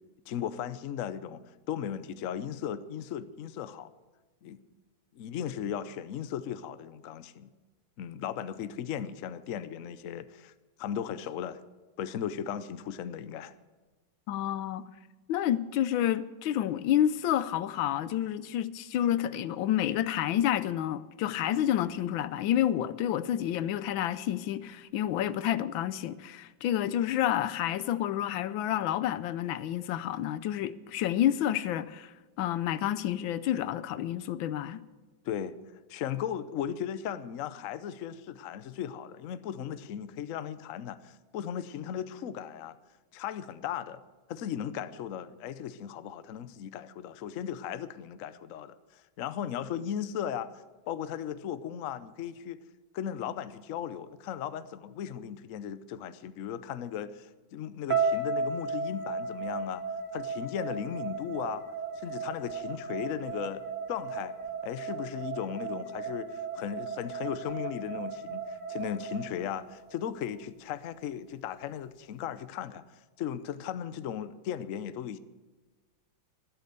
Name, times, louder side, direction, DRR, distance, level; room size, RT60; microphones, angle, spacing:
voice 1, 0.3-1.4 1.7-3.9 4.4-4.6 5.1-7.5 8.0-10.5 10.8-11.6 12.0-13.5 35.2-35.6 35.9-42.8 43.1-44.0 44.3-50.5 50.9-52.6 52.9-59.8 60.1-61.7 62.0-64.3 64.6-75.2, left 9 dB, 65° left, 0.8 m, -36 dB
voice 2, 14.3-14.9 15.3-34.8, left 11 dB, 85° left, 1.4 m, -29 dB
sound 1, 57.9-70.0, right 4 dB, 60° right, 2.1 m, -35 dB
12.5 x 12.0 x 6.7 m
omnidirectional pair, 2.1 m